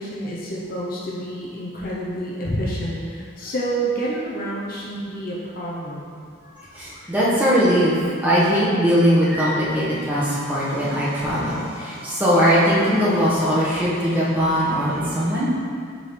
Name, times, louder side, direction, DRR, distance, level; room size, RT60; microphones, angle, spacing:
voice 1, 0.0-6.1, right 1 dB, 45° left, -5 dB, 0.7 m, -28 dB
voice 2, 6.7-15.5, equal, 10° right, -10 dB, 1.2 m, -20 dB
7.6 x 3.8 x 3.2 m, 2.3 s
head